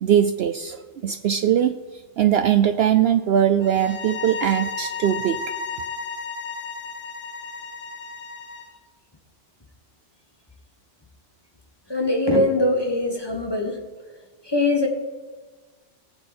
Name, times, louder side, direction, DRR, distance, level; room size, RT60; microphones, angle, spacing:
voice 1, 0.0-1.7 2.2-5.4, right 10 dB, 65° right, 9 dB, 0.7 m, -20 dB
sound 1, 3.6-8.8, left 4 dB, 50° left, 1.2 m, -33 dB
voice 2, 11.9-13.8 14.4-14.9, left 2 dB, 20° left, 2 dB, 1.4 m, -22 dB
19.0 x 7.9 x 4.3 m, 1.3 s
omnidirectional pair, 1.3 m